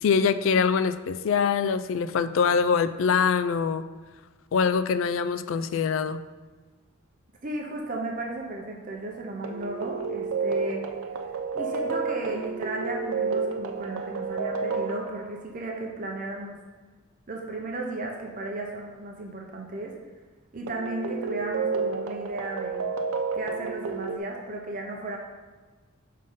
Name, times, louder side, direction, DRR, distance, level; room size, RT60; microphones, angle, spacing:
voice 1, 0.0-3.8 4.5-6.2, left 6 dB, 70° left, 12 dB, 0.3 m, -24 dB
voice 2, 7.4-10.8 11.5-16.6 17.3-19.9 20.5-22.8 23.3-25.2, right 2 dB, 40° right, 0 dB, 0.7 m, -35 dB
sound 1, 9.4-15.4 20.7-24.2, right 5 dB, 90° right, 0.5 m, -30 dB
5.2 x 3.7 x 5.5 m, 1.3 s
head